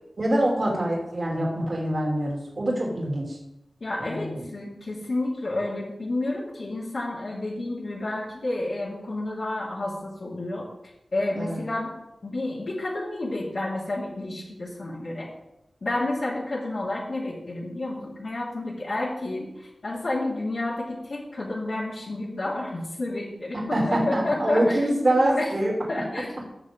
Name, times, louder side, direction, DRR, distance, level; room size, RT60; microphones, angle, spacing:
voice 1, 0.2-3.4 4.0-4.4 11.3-11.6 23.7-25.7, right 1 dB, 45° right, -3 dB, 3.1 m, -25 dB
voice 2, 3.8-10.7 11.1-11.9 12.2-15.3 15.8-24.8 25.1-25.5 25.9-26.3, left 2 dB, 60° left, -7 dB, 2.4 m, -30 dB
16.5 x 6.4 x 3.8 m, 0.89 s
wide cardioid pair, 90°, 0 cm